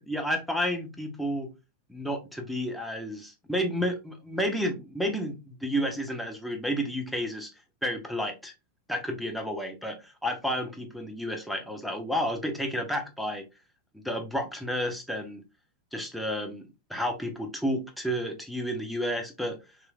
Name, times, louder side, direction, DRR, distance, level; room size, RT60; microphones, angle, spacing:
voice 1, 0.1-1.5 1.9-7.5 7.8-8.5 8.9-13.5 13.9-15.4 15.9-19.6, equal, ahead, 0.7 m, -31 dB
3.2 x 3.1 x 2.2 m
figure-of-eight pair, 90°, 0 cm